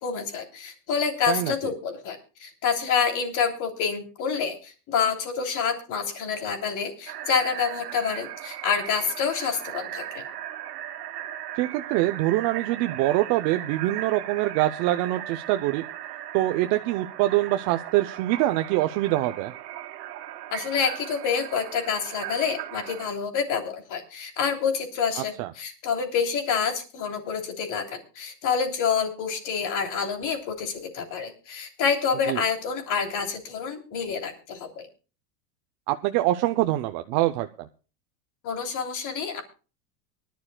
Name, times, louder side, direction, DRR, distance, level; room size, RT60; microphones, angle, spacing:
voice 1, 0.0-10.2 20.5-34.9 38.4-39.4, left 6 dB, 40° left, 4 dB, 3.1 m, -27 dB
sound 1, 7.1-23.1, right 12 dB, 70° right, 2.1 m, -38 dB
voice 2, 11.6-15.8 16.3-19.5 25.2-25.5 32.3-32.4 35.9-37.7, right 16 dB, 35° right, 7 dB, 0.6 m, -24 dB
23.5 x 11.5 x 2.3 m, 0.34 s
supercardioid pair, 145°, 49 cm